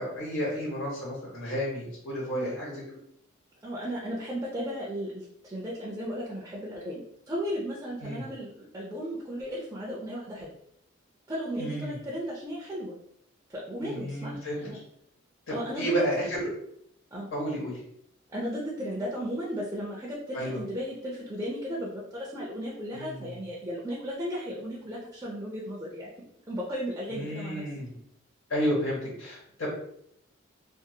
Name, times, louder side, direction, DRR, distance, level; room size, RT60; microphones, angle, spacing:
voice 1, 0.0-2.7 8.0-8.2 11.6-12.0 13.8-14.6 15.5-16.5 17.3-17.8 20.3-20.6 22.9-23.3 27.1-27.9 28.5-29.7, equal, 85° left, -6 dB, 1.3 m, -31 dB
voice 2, 3.6-10.5 11.3-12.9 13.5-14.8 15.5-15.9 17.1-17.3 18.3-26.1 26.5-27.6, equal, 15° right, -6 dB, 0.5 m, -35 dB
2.6 x 2.5 x 2.8 m, 0.70 s
head